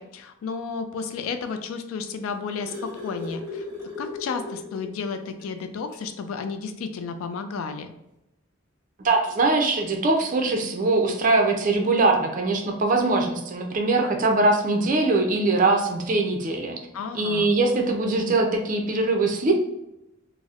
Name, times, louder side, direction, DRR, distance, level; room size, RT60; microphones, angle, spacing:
voice 1, 0.0-3.6 4.0-7.9 16.9-17.5, left 5 dB, 80° left, 8 dB, 0.3 m, -32 dB
sound 1, 2.1-5.0 5.4-5.5 5.9-6.1 7.2-7.3, left 3 dB, 10° left, 1.1 m, -36 dB
voice 2, 9.0-16.8 17.1-19.5, right 2 dB, 40° right, 2 dB, 0.4 m, -22 dB
4.0 x 2.0 x 2.4 m, 0.89 s
head